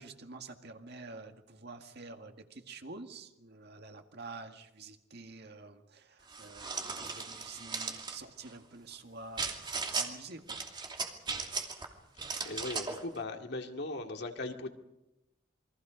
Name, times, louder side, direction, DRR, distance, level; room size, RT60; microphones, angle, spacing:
voice 1, 0.0-9.5 9.9-10.6, right 3 dB, 55° right, 5 dB, 2.0 m, -48 dB
sound 1, 6.3-8.2 9.4-10.1 10.5-11.9 12.2-13.0, right 4 dB, 25° right, 2.7 m, -37 dB
voice 2, 12.4-14.7, left 2 dB, 60° left, 4 dB, 2.3 m, -38 dB
28.5 x 23.0 x 5.2 m, 0.92 s
head